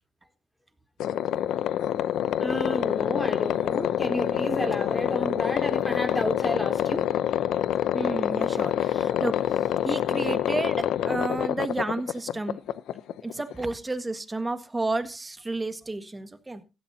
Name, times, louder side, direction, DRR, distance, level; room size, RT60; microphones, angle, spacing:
sound 1, 1.0-13.6, left 11 dB, 80° left, 0.6 m, -26 dB
voice 1, 2.4-7.1 8.5-8.6, left 1 dB, 10° left, 3.5 m, -31 dB
voice 2, 7.9-9.4 9.8-12.6 13.2-16.6, right 2 dB, 20° right, 1.6 m, -31 dB
16.0 x 12.5 x 2.7 m
cardioid pair, 90°, 0 cm